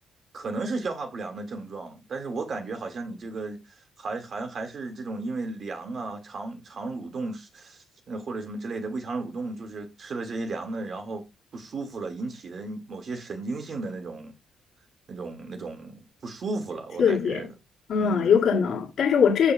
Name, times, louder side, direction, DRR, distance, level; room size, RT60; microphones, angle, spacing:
voice 1, 0.3-3.6 4.0-11.2 11.5-14.3 15.1-17.5 18.0-18.4, right 3 dB, 50° right, 1.9 m, -34 dB
voice 2, 17.0-17.4 17.9-19.5, left 7 dB, 70° left, 2.0 m, -21 dB
14.0 x 6.1 x 2.3 m
cardioid pair, 90°, 0 cm